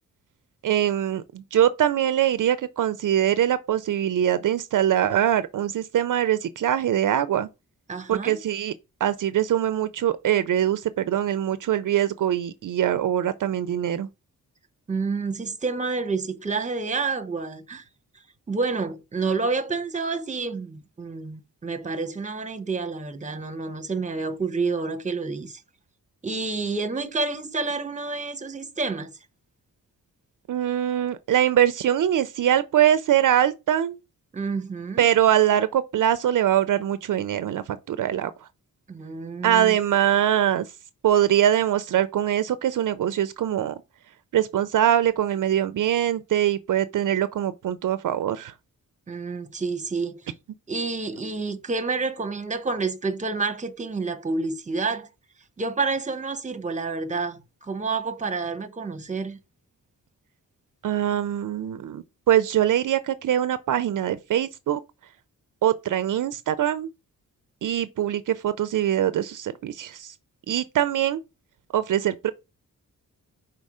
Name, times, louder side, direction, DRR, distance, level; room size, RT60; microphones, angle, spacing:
voice 1, 0.6-7.5 8.1-8.7 9.0-14.1 30.5-34.0 35.0-38.5 39.4-40.7 41.0-43.8 44.3-48.5 60.8-64.8 65.6-66.9 67.6-70.1 70.5-71.2 71.7-72.3, right 11 dB, 65° right, 0.5 m, -23 dB
voice 2, 7.9-8.4 14.9-17.8 18.5-25.6 26.2-29.1 34.3-35.1 38.9-39.8 49.1-50.2 50.7-55.1 55.6-59.4, right 4 dB, 20° right, 0.9 m, -29 dB
5.4 x 4.1 x 4.8 m
wide cardioid pair, 125°, 33 cm